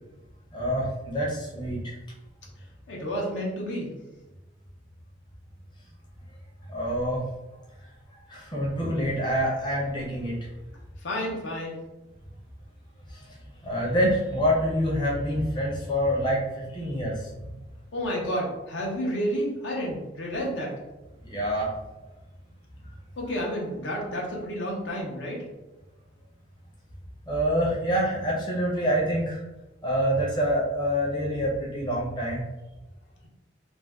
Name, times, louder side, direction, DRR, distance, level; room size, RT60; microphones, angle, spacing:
voice 1, 0.5-1.9 6.7-7.2 8.3-10.4 13.1-13.2 13.6-17.5 21.2-21.7 27.3-29.4 29.8-32.4, equal, 25° left, -4 dB, 0.6 m, -26 dB
voice 2, 2.9-3.9 11.0-11.8 17.9-20.8 23.2-25.4, equal, 75° left, -2 dB, 0.7 m, -30 dB
2.5 x 2.1 x 3.4 m, 1.1 s
head